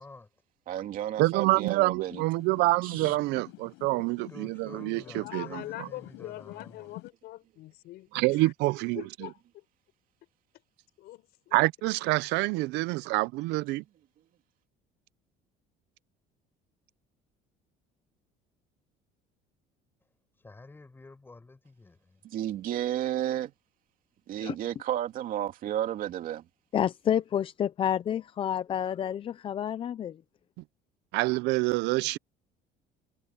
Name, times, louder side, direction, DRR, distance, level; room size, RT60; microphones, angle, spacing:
voice 1, 0.7-2.2 2.8-3.2 22.2-23.5 24.3-26.4, right 11 dB, 50° right, 2.6 m, -32 dB
voice 2, 1.2-5.6 8.1-9.0 11.5-13.8 31.1-32.2, right 21 dB, 75° right, 0.5 m, -27 dB
sound 1, 2.1-7.1, left 21 dB, 85° left, 6.1 m, -49 dB
voice 3, 4.3-6.9 20.4-22.2, left 3 dB, 10° left, 7.4 m, -50 dB
voice 4, 4.8-8.5 8.9-9.6 11.0-11.6, left 16 dB, 65° left, 5.8 m, -43 dB
voice 5, 26.7-30.2, left 9 dB, 30° left, 0.5 m, -29 dB
cardioid pair, 160°, 18 cm